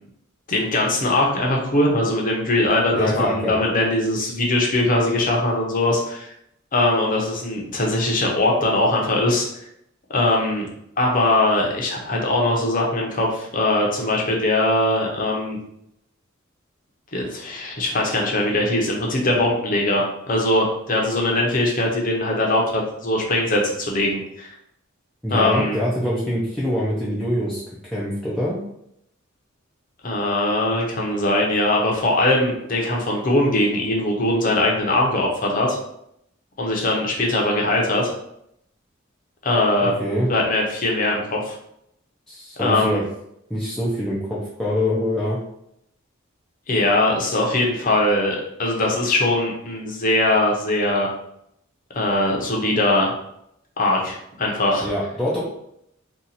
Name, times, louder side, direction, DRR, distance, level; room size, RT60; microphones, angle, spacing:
voice 1, 0.5-6.3 6.7-9.5 10.1-10.7 11.0-15.6 17.1-24.5 25.3-25.8 30.0-35.8 36.6-38.1 39.4-40.0 40.3-41.5 42.6-43.0 46.7-51.1 51.9-53.1 53.8-54.9, left 1 dB, 45° left, -1 dB, 0.8 m, -21 dB
voice 2, 2.9-3.5 25.2-27.6 27.9-28.6 40.0-40.3 42.3-43.0 43.5-45.4 54.8-55.4, left 1 dB, ahead, -8 dB, 0.5 m, -24 dB
2.8 x 2.4 x 3.9 m, 0.76 s
head